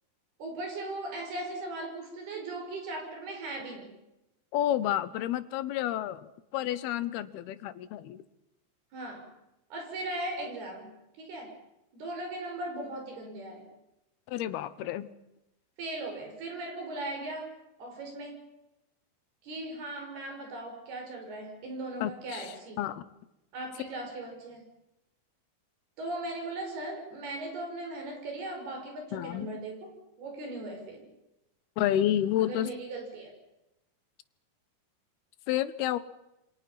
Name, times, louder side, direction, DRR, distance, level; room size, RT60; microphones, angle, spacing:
voice 1, 0.4-3.9 8.9-9.3 9.7-10.9 11.2-11.6 11.9-13.6 15.8-17.5 17.8-18.4 19.4-22.8 23.5-24.6 26.0-29.9 30.2-31.1 32.5-33.3, right 2 dB, 85° right, 2 dB, 7.5 m, -38 dB
voice 2, 4.5-8.2 14.3-15.1 22.0-23.1 29.1-29.5 31.8-32.7 35.5-36.0, left 12 dB, 85° left, 14 dB, 3.0 m, -30 dB
28.5 x 25.5 x 5.8 m, 0.92 s
omnidirectional pair, 4.4 m